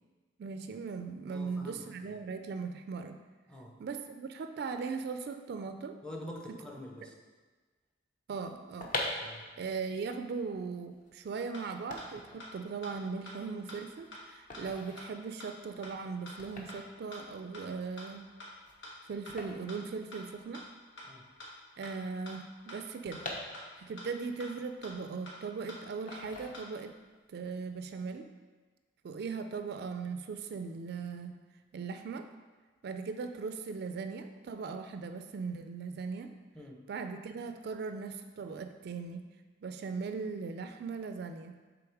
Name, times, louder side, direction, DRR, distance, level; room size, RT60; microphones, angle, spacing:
voice 1, 0.4-3.2 3.8-6.0 8.3-8.9 9.6-18.3 19.1-20.7 21.8-23.2 23.8-27.0 27.3-28.3 29.0-31.5 31.7-32.3 32.8-36.3 36.9-39.3 39.6-41.6, right 5 dB, 60° right, 8 dB, 0.3 m, -39 dB
voice 2, 1.3-2.1 3.5-3.8 6.0-7.2 9.2-9.5 21.1-21.3 36.5-36.8, left 1 dB, 5° left, 0 dB, 0.7 m, -46 dB
sound 1, 8.5-20.7 20.9-21.0 21.2-24.1 24.5-25.5 26.1-27.1 27.4-27.7, left 2 dB, 45° left, 0.9 m, -43 dB
sound 2, 11.5-11.6 12.0-12.1 12.4-12.5 12.8-12.9 13.3-13.4 13.7-13.8 14.1-14.2 14.5-14.6 15.0-15.1 15.4-15.5 15.8-15.9 16.3-16.4 16.7-16.8 17.1-17.2 17.5-17.6 18.0-18.1 18.4-18.5 18.8-18.9 19.3-19.4 19.7-19.8 20.1-20.2 20.5-20.6 21.0-21.1 21.4-21.5 21.8-21.9 22.3-22.4 22.7-22.8 23.1-23.2 23.5-23.6 24.0-24.1 24.4-24.5 24.8-24.9 25.3-25.4 25.7-25.8 26.1-26.2 26.5-26.6, left 1 dB, 90° left, 1.5 m, -46 dB
7.0 x 3.6 x 4.6 m, 1.3 s
head